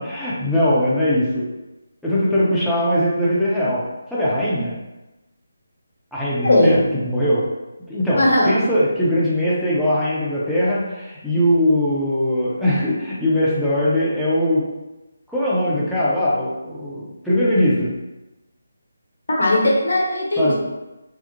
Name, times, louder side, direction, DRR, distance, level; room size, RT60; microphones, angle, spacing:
voice 1, 0.0-1.5 2.0-3.8 4.1-4.8 6.1-7.4 7.9-14.6 15.3-17.9 20.4-20.5, equal, ahead, -11 dB, 0.5 m, -20 dB
voice 2, 6.4-6.8 8.2-8.5 19.3-20.5, left 1 dB, 60° left, -2 dB, 0.9 m, -17 dB
2.5 x 2.0 x 2.8 m, 1.0 s
figure-of-eight pair, 150°, 0 cm